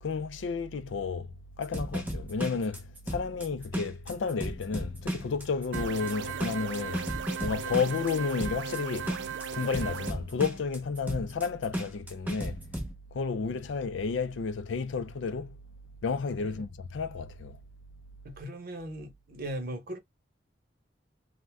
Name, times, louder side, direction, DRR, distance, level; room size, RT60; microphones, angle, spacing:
voice 1, 0.0-1.3 1.6-7.1 7.4-9.1 9.5-12.6 13.1-15.6 16.0-17.6, left 5 dB, 85° left, 0.4 m, -32 dB
sound 1, 1.6-12.9, equal, 10° right, 0.8 m, -35 dB
sound 2, 5.7-10.1, right 7 dB, 70° right, 0.4 m, -37 dB
voice 2, 18.2-20.0, right 1 dB, 50° right, 0.9 m, -38 dB
2.6 x 2.2 x 3.4 m
head